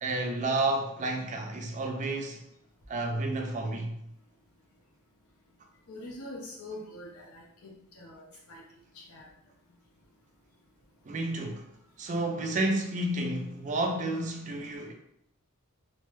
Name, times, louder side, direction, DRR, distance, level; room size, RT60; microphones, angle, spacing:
voice 1, 0.0-2.4 2.9-4.0 11.1-11.7 12.0-14.9, right 2 dB, 35° right, 0.4 m, -31 dB
voice 2, 5.9-8.6 8.9-9.3, left 1 dB, 75° left, 0.8 m, -44 dB
3.1 x 2.1 x 3.0 m
head